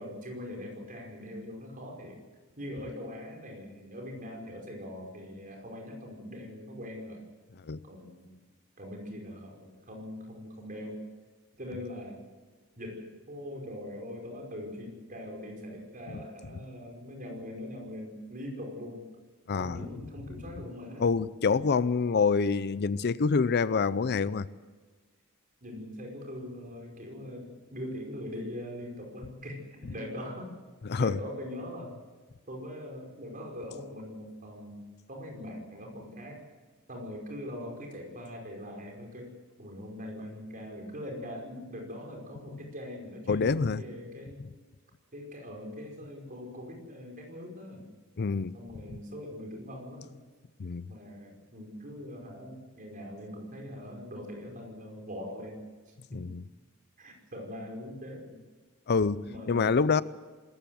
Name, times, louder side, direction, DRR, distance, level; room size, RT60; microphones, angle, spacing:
voice 1, 0.0-2.2 2.6-7.2 7.8-8.4 8.8-11.1 11.6-12.2 12.8-19.0 19.6-21.1 25.6-30.5 31.0-32.0 32.5-34.8 35.1-36.5 36.9-39.3 39.6-44.4 45.1-47.9 48.5-50.2 50.9-55.6 55.9-56.3 57.0-58.4 59.3-59.8, left 1 dB, 40° right, 2 dB, 5.1 m, -42 dB
voice 2, 19.5-19.8 21.0-24.5 30.9-31.2 43.3-43.8 48.2-48.5 50.6-50.9 56.1-56.4 58.9-60.0, left 5 dB, 50° left, 17 dB, 0.5 m, -26 dB
25.0 x 14.0 x 7.8 m, 1.4 s
head